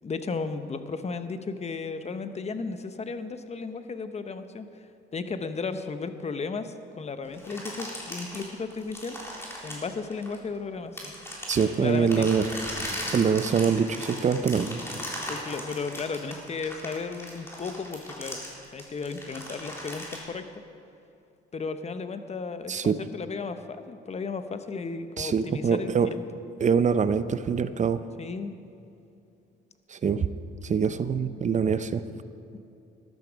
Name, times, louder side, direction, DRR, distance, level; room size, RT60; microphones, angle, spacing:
voice 1, 0.0-4.9 5.1-9.2 9.6-11.1 11.8-12.3 14.9-18.4 18.7-20.5 21.5-26.2 28.2-28.5, left 4 dB, 35° left, 9 dB, 0.9 m, -34 dB
sound 1, 7.3-10.5 11.0-20.2, equal, 10° left, 3.6 m, -38 dB
voice 2, 11.5-12.5 13.1-14.8 22.7-23.0 25.2-26.1 26.6-28.0 29.9-30.3 30.6-32.0, right 6 dB, 35° right, 13 dB, 0.6 m, -24 dB
13.5 x 12.0 x 5.2 m, 2.6 s
cardioid pair, 90°, 20 cm